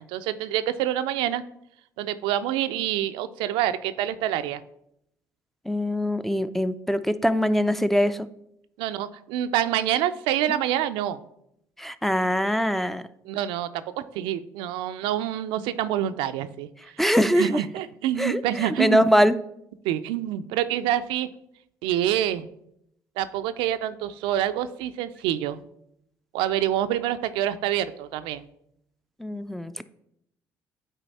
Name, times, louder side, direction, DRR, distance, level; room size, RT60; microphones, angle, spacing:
voice 1, 0.0-1.4 2.0-4.6 8.8-11.2 13.3-16.7 17.3-19.0 19.8-21.3 21.8-22.5 23.2-25.6 26.3-28.5, right 11 dB, 75° right, 11 dB, 0.4 m, -27 dB
voice 2, 5.7-8.3 10.5-10.6 11.8-13.0 17.0-17.6 18.2-19.4 29.2-29.8, equal, 5° left, 13 dB, 0.4 m, -23 dB
9.0 x 4.0 x 4.1 m, 0.77 s
hypercardioid pair, 60°, 9 cm